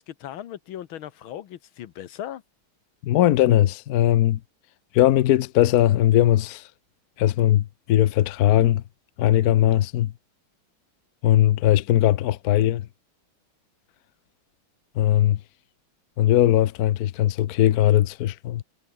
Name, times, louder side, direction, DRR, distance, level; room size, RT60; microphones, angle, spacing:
voice 1, 0.0-2.4, left 11 dB, 80° left, 1.9 m, -37 dB
voice 2, 3.0-4.4 4.9-6.6 7.2-8.8 9.2-10.1 11.2-12.8 15.0-15.4 16.2-18.6, left 13 dB, 65° left, 1.0 m, -19 dB
omnidirectional pair, 2.2 m